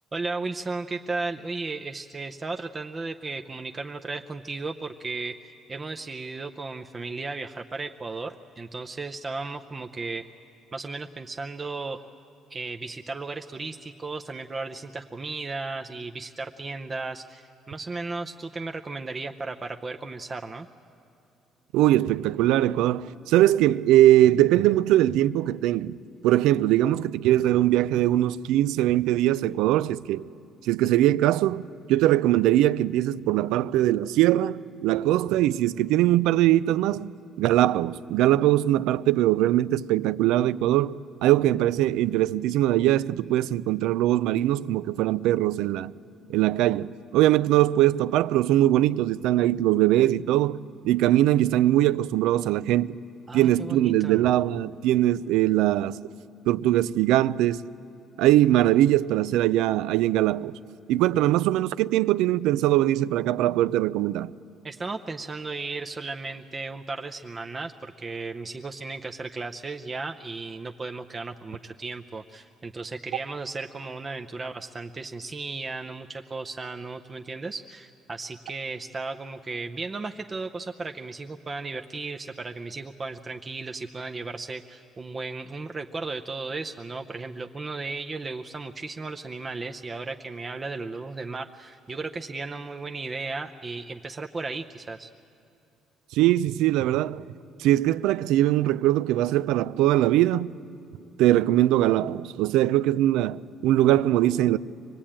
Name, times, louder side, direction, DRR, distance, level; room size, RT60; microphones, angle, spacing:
voice 1, 0.1-10.2 10.7-12.0 12.5-20.7 53.3-54.3 64.6-95.1, right 3 dB, 25° right, 0.6 m, -35 dB
voice 2, 21.7-26.0 26.2-30.3 30.6-45.9 46.3-50.6 50.8-53.0 53.3-56.0 56.5-57.6 58.2-60.5 60.9-64.3 96.1-97.2 97.6-100.5 101.2-104.6, right 14 dB, 90° right, 0.5 m, -21 dB
25.0 x 19.0 x 8.8 m
cardioid pair, 135°, 0 cm